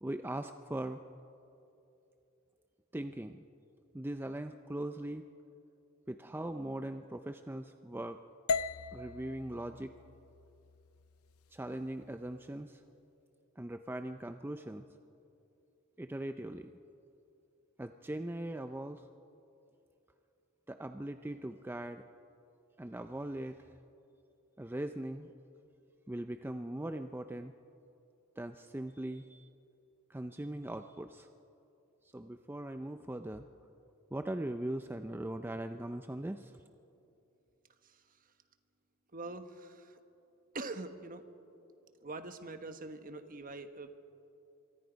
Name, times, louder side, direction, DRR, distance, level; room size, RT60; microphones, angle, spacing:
voice 1, 0.0-1.0 2.9-3.4 3.9-5.3 6.1-8.2 8.9-9.9 11.5-12.8 13.6-14.9 16.0-16.7 17.8-19.1 20.7-22.0 22.8-23.6 24.6-25.3 26.1-27.5 28.4-29.5 30.1-31.3 32.1-33.5 34.1-36.6, right 1 dB, 10° right, 8 dB, 0.5 m, -40 dB
sound 1, 8.5-12.6, left 4 dB, 90° left, 0.5 m, -40 dB
voice 2, 39.1-40.0 40.5-41.2 42.0-44.0, right 2 dB, 40° right, 8 dB, 1.2 m, -44 dB
26.0 x 23.5 x 5.1 m, 2.8 s
head